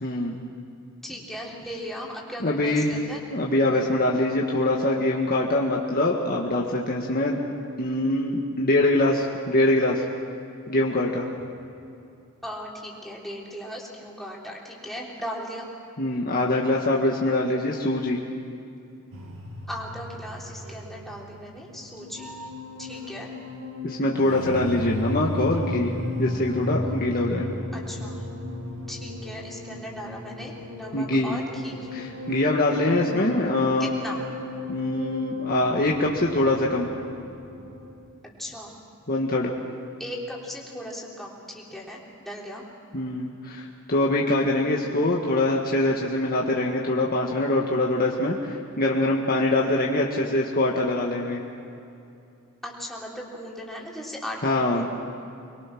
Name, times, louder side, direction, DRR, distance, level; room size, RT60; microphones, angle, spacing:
voice 1, 0.0-0.4 2.4-3.0 3.3-7.4 7.8-10.0 10.7-11.3 16.0-18.2 23.8-25.9 26.2-27.5 30.9-31.4 31.9-33.9 34.7-36.9 39.1-39.5 42.9-51.4 54.4-54.9, left 1 dB, 45° left, -2 dB, 1.6 m, -24 dB
voice 2, 1.0-3.2 12.4-15.7 19.7-22.5 22.8-23.3 27.7-28.2 28.9-31.9 32.7-33.0 33.8-34.2 38.4-38.7 40.0-42.7 44.6-44.9 52.6-54.9, equal, ahead, -3 dB, 3.4 m, -37 dB
sound 1, 19.1-37.9, left 2 dB, 65° right, 2.5 m, -35 dB
25.0 x 22.0 x 6.1 m, 2.6 s
head